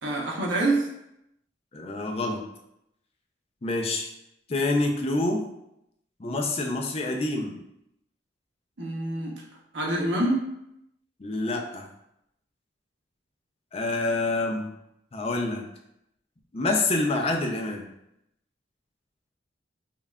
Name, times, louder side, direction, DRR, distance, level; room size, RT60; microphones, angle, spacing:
voice 1, 0.0-0.9 8.8-9.4 9.7-10.5, right 2 dB, 80° right, -2 dB, 0.9 m, -26 dB
voice 2, 1.7-2.4 3.6-4.1 4.5-5.4 6.2-7.6 11.2-11.9 13.7-14.7 15.1-15.7 16.5-17.9, left 2 dB, 35° left, 2 dB, 0.4 m, -27 dB
5.4 x 2.4 x 2.3 m, 0.81 s
head